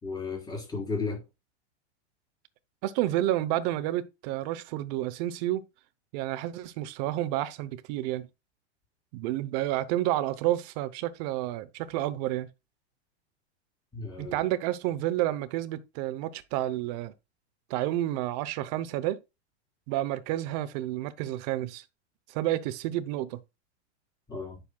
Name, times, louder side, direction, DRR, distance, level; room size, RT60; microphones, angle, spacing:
voice 1, 0.0-1.2 13.9-14.4 24.3-24.6, left 4 dB, 10° left, 4.6 m, -34 dB
voice 2, 2.8-5.6 6.1-8.3 9.1-12.5 14.2-17.1 17.7-19.2 19.9-21.8 22.3-23.4, right 14 dB, 40° right, 0.8 m, -30 dB
9.4 x 6.7 x 2.3 m
supercardioid pair, 150°, 35 cm